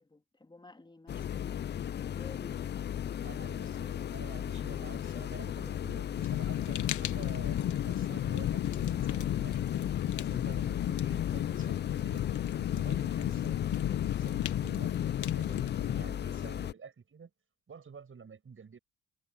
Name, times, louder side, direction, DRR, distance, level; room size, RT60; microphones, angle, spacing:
voice 1, 0.0-2.7, left 2 dB, 15° left, 3.1 m, -54 dB
sound 1, 1.1-16.7, left 10 dB, 30° left, 0.4 m, -36 dB
voice 2, 3.2-9.7 10.2-12.3 12.7-15.0 15.3-17.3 17.7-18.8, right 6 dB, 35° right, 7.9 m, -50 dB
Fire, 6.2-16.0, left 12 dB, 60° left, 0.9 m, -33 dB
cardioid pair, 110°, 34 cm